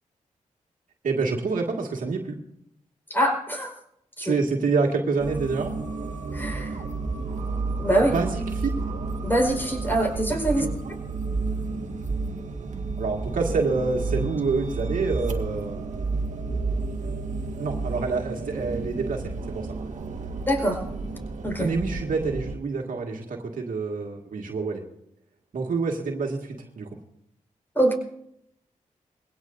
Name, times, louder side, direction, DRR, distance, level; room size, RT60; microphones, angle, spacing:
voice 1, 1.0-2.4 4.2-5.8 8.1-8.7 10.6-10.7 13.0-15.9 17.6-19.7 21.6-24.8 25.5-27.0, right 4 dB, 75° right, 1 dB, 2.0 m, -27 dB
voice 2, 3.1-3.7 4.2-4.3 6.3-6.8 7.8-8.2 9.2-10.6 20.5-20.8 21.4-21.7 27.7-27.9, right 1 dB, 15° left, 2 dB, 4.9 m, -23 dB
sound 1, 5.2-22.6, right 3 dB, 60° right, 1.7 m, -31 dB
22.0 x 17.0 x 2.7 m, 0.77 s
cardioid pair, 50°, 14 cm